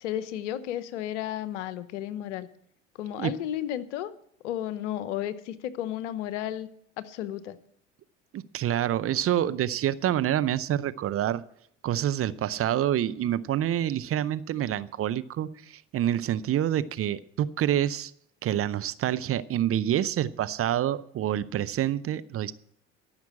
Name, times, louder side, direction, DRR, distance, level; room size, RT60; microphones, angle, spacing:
voice 1, 0.0-2.5 3.0-4.1 4.4-6.7 7.0-7.6, left 11 dB, 80° left, 15 dB, 0.9 m, -33 dB
voice 2, 8.3-11.4 11.8-18.1 18.4-22.5, right 11 dB, 40° right, 15 dB, 0.6 m, -27 dB
13.5 x 6.0 x 8.5 m, 0.67 s
hypercardioid pair, 70°, 36 cm